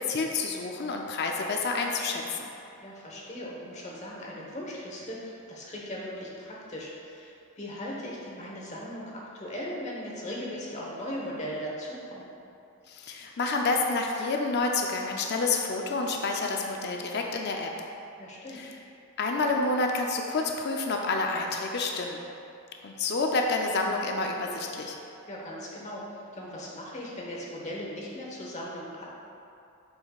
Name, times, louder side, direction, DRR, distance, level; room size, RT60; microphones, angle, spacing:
voice 1, 0.0-2.5 12.9-17.7 18.5-18.7 19.2-22.2 22.8-25.0, left 3 dB, 50° left, 1 dB, 0.5 m, -29 dB
voice 2, 2.8-12.2 18.2-18.6 25.3-29.0, equal, 35° left, -4 dB, 1.0 m, -38 dB
8.0 x 5.3 x 2.3 m, 2.6 s
head